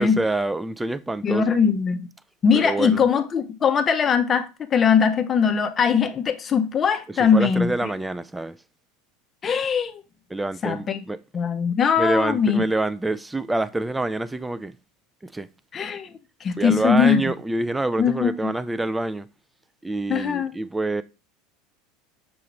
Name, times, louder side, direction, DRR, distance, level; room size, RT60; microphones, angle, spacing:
voice 1, 0.0-1.6 2.5-3.0 7.1-8.6 10.3-11.2 12.0-14.7 15.2-15.5 16.6-19.3 19.8-21.0, right 2 dB, 10° right, 0.3 m, -26 dB
voice 2, 1.2-2.1 2.4-7.7 9.4-10.0 10.6-11.0 11.3-12.6 15.7-16.1 16.4-17.2 18.0-18.5 20.1-20.5, left 6 dB, 35° left, 0.6 m, -21 dB
6.8 x 2.4 x 3.0 m
hypercardioid pair, 85°, 0 cm